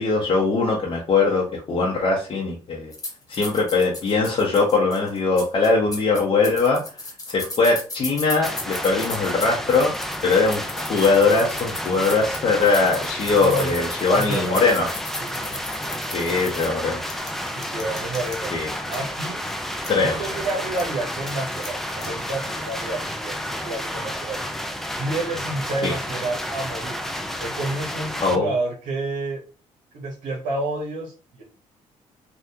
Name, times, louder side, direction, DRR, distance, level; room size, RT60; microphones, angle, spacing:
voice 1, 0.0-2.9 3.3-6.8 7.3-9.9 10.2-14.9 16.1-17.0 18.5-18.7 19.9-20.4 25.8-25.9 28.2-28.5, left 3 dB, 45° left, -3 dB, 0.8 m, -21 dB
sound 1, 2.9-18.4 18.7-19.0 19.5-19.6 19.8-19.9 20.4-20.5 20.8-20.9 21.3-22.3, left 2 dB, 30° left, 1.2 m, -36 dB
sound 2, 8.4-28.4, equal, ahead, 0.4 m, -31 dB
voice 2, 13.4-14.7 15.2-15.9 17.5-18.5 18.9-19.4 20.0-24.4 25.0-27.0 27.4-29.4 29.9-31.4, right 2 dB, 80° right, -1 dB, 0.9 m, -29 dB
3.6 x 2.3 x 2.7 m, 0.37 s
cardioid pair, 100°, 13 cm